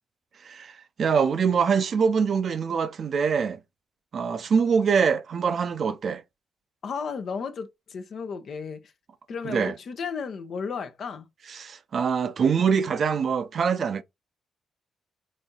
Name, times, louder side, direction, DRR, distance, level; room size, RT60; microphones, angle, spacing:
voice 1, 1.0-3.6 4.1-6.2 9.4-9.7 11.5-14.0, right 6 dB, 60° right, 0.5 m, -24 dB
voice 2, 6.8-8.8 9.3-11.3, left 5 dB, 65° left, 0.7 m, -34 dB
4.2 x 2.7 x 3.7 m
supercardioid pair, 60°, 0 cm